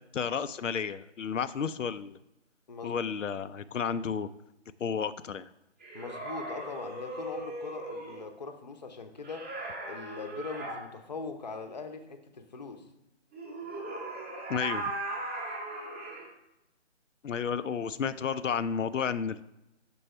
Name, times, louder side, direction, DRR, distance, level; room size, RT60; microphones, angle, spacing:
voice 1, 0.1-2.2 2.8-4.3 4.8-5.5 14.5-14.8 17.2-19.4, left 6 dB, 85° left, 12 dB, 0.5 m, -32 dB
voice 2, 2.7-3.2 5.9-9.5 9.9-12.9, left 4 dB, 35° left, 7 dB, 0.7 m, -41 dB
sound 1, 5.8-8.2 9.2-10.8 13.3-16.3, right 2 dB, 10° right, 0.7 m, -38 dB
6.9 x 4.5 x 4.3 m, 0.90 s
figure-of-eight pair, 155°, 37 cm